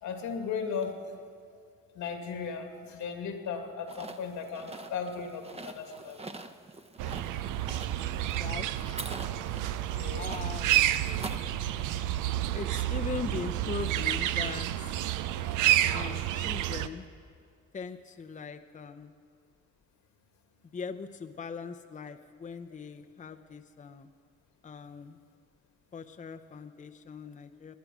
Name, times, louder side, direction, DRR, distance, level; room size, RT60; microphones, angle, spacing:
voice 1, 0.0-0.9 2.0-6.2 9.9-10.2, left 6 dB, 80° left, 5 dB, 2.0 m, -36 dB
sound 1, 3.9-11.4, right 3 dB, 20° right, 0.8 m, -45 dB
sound 2, 7.0-16.9, right 13 dB, 90° right, 0.6 m, -30 dB
voice 2, 8.3-8.7 10.1-10.7 12.5-15.0 15.9-17.1 17.7-19.1 20.7-24.1 24.6-25.2 25.9-27.7, left 5 dB, 25° left, 7 dB, 0.6 m, -40 dB
19.5 x 10.5 x 6.1 m, 2.2 s
cardioid pair, 90°, 30 cm